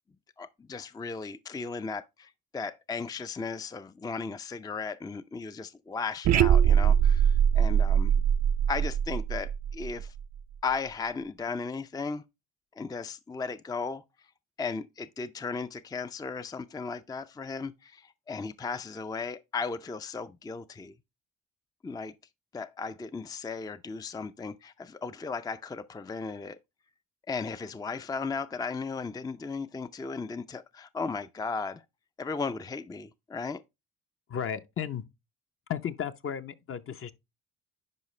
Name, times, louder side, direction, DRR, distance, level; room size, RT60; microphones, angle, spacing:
voice 1, 0.4-8.2 8.7-10.1 10.6-12.2 12.8-14.0 14.6-20.9 21.8-22.1 22.5-26.6 27.3-31.8 32.2-33.6, left 4 dB, 15° left, 0.4 m, -36 dB
sound 1, 6.2-10.4, right 9 dB, 65° right, 0.5 m, -23 dB
voice 2, 34.3-35.1 35.7-37.1, left 8 dB, 45° left, 0.8 m, -34 dB
11.0 x 4.7 x 3.2 m
cardioid pair, 90°, 30 cm